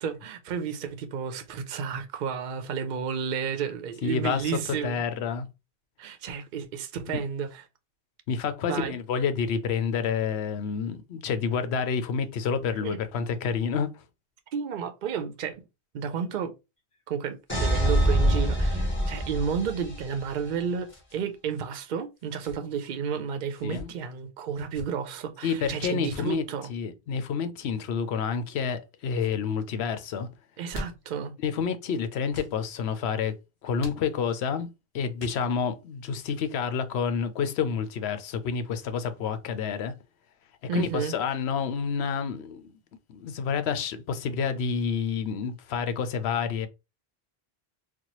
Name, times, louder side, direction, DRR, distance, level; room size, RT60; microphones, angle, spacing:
voice 1, 0.0-5.0 6.0-7.6 8.7-9.0 12.8-13.0 14.5-15.6 15.9-16.5 17.1-26.7 30.6-31.4 40.7-41.1, right 6 dB, 60° right, 0.6 m, -32 dB
voice 2, 4.0-5.5 8.3-13.9 23.6-23.9 25.4-26.4 26.7-30.3 31.4-33.4 33.6-34.7 34.9-39.9 40.7-42.7 43.1-46.7, left 6 dB, 85° left, 0.9 m, -29 dB
sound 1, 16.8-18.1 18.4-18.5 19.4-19.7 20.8-21.2 22.1-22.6 23.5-23.9 24.5-24.9 25.6-26.4 27.5-27.9 28.5-28.9 29.1-29.4 30.4-31.2 32.3-32.6 33.8-34.4 35.2-35.7, left 1 dB, 30° left, 1.1 m, -45 dB
sound 2, 17.5-20.4, right 1 dB, 10° left, 1.6 m, -25 dB
4.2 x 2.2 x 2.9 m
omnidirectional pair, 1.1 m